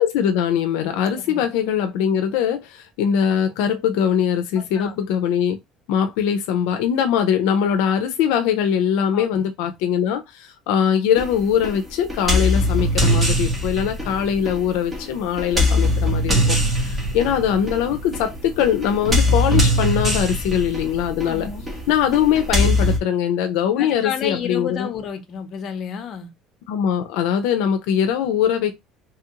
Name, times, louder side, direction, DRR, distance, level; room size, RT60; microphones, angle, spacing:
voice 1, 0.0-5.6 5.9-21.5 21.9-24.9 26.7-28.7, left 8 dB, 85° left, 0.4 m, -21 dB
voice 2, 4.6-5.0 9.1-9.8 21.3-21.7 23.8-26.3, left 8 dB, 45° left, 0.7 m, -31 dB
sound 1, 11.2-23.0, left 1 dB, 15° right, 1.0 m, -22 dB
sound 2, 16.5-22.9, right 2 dB, 85° right, 0.7 m, -39 dB
3.0 x 2.4 x 2.8 m
cardioid pair, 130°, 0 cm